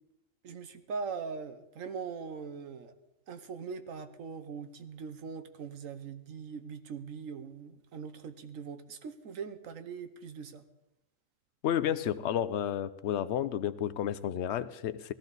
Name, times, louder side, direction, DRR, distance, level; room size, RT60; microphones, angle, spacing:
voice 1, 0.4-2.9 3.3-10.6, right 5 dB, 80° right, 10 dB, 1.3 m, -41 dB
voice 2, 11.6-15.1, left 10 dB, 65° left, 14 dB, 0.9 m, -31 dB
17.5 x 14.0 x 4.0 m, 0.93 s
omnidirectional pair, 1.4 m